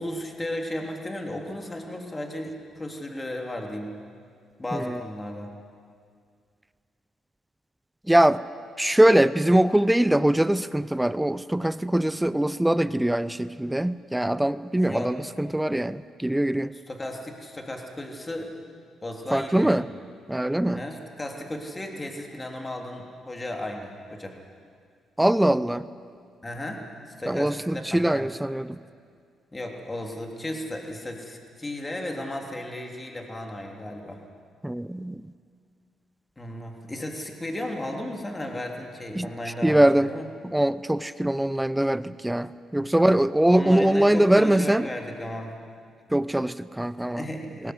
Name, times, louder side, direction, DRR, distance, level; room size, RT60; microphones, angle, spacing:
voice 1, 0.0-3.9 4.6-5.5 14.9-15.2 16.9-18.5 19.0-19.8 20.7-24.4 26.4-26.8 27.2-28.3 29.5-34.2 36.4-40.3 42.7-42.9 43.5-45.5 47.2-47.7, left 1 dB, 20° left, 2 dB, 3.3 m, -35 dB
voice 2, 8.1-8.4 8.8-16.7 19.3-19.9 20.3-20.8 25.2-25.9 27.3-28.8 34.6-35.3 39.1-39.3 39.6-40.1 40.4-44.9 46.1-47.2 47.6-47.7, right 1 dB, 5° right, 15 dB, 0.6 m, -22 dB
21.0 x 17.5 x 9.5 m, 2.2 s
cardioid pair, 90°, 0 cm